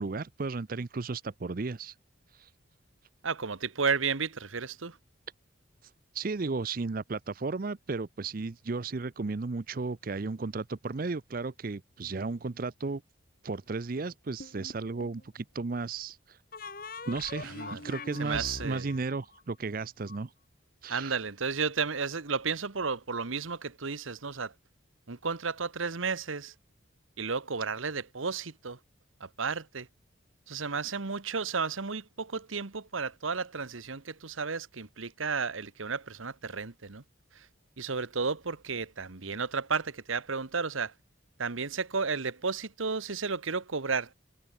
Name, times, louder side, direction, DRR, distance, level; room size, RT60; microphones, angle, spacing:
voice 1, 0.0-1.9 2.3-2.5 6.1-13.0 13.4-16.4 17.1-20.3 20.8-21.2, right 3 dB, 45° right, 0.5 m, -34 dB
voice 2, 3.2-5.0 17.5-17.8 18.2-18.9 20.9-24.5 25.1-26.5 27.2-28.8 29.2-29.9 30.5-37.0 37.8-40.9 41.4-44.1, right 5 dB, 80° right, 1.3 m, -33 dB
sound 1, 14.4-15.2 16.5-20.2, left 3 dB, 45° left, 2.8 m, -43 dB
head